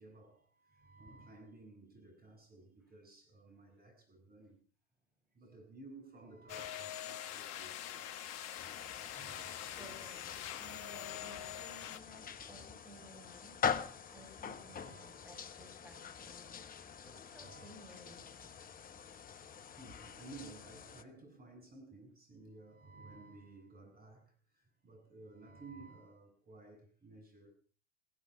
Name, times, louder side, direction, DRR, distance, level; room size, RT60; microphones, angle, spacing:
voice 1, 0.0-4.6 5.3-8.3 8.8-9.8 14.6-15.3 17.3-17.8 19.8-27.5, right 3 dB, 25° right, 7.9 m, -55 dB
sound 1, 6.5-12.0, left 11 dB, 45° left, 1.4 m, -44 dB
sound 2, 8.5-21.0, left 7 dB, 25° left, 1.2 m, -44 dB
voice 2, 9.8-18.7, equal, 5° right, 6.2 m, -57 dB
17.5 x 16.5 x 4.9 m
figure-of-eight pair, 85°, 36 cm